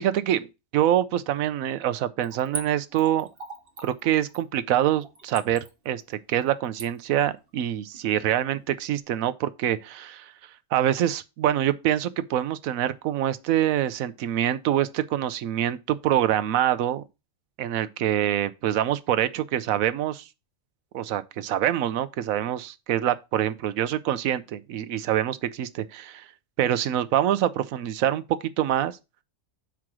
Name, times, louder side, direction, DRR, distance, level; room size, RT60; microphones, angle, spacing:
voice 1, 0.0-3.3 3.8-10.3 10.7-17.0 17.6-20.3 20.9-26.3 26.6-28.2 28.6-29.0, right 11 dB, 90° right, 1.1 m, -25 dB
Splash splatter / Trickle dribble, 2.2-8.6 9.0-9.1, right 3 dB, 45° right, 1.7 m, -41 dB
6.2 x 4.8 x 6.0 m
omnidirectional pair, 1.4 m